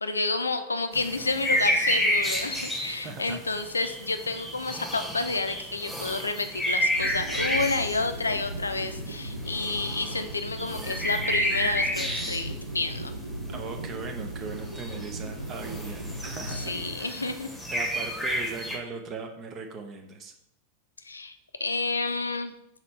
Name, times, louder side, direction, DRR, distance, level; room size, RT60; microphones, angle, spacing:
voice 1, 0.0-13.1 16.7-17.5 21.0-22.5, left 3 dB, 80° left, 9 dB, 0.5 m, -30 dB
sound 1, 0.9-12.6 13.0-13.1 13.7-13.8 14.1-14.2 14.5-15.1 15.4-18.8, equal, 5° left, 1.4 m, -30 dB
voice 2, 3.0-3.4 13.5-16.7 17.0-17.3 17.7-20.3, right 4 dB, 30° right, 4 dB, 0.7 m, -39 dB
sound 2, 6.9-16.9, right 1 dB, 80° right, 0.7 m, -37 dB
4.3 x 4.1 x 5.6 m, 0.80 s
figure-of-eight pair, 90°, 0 cm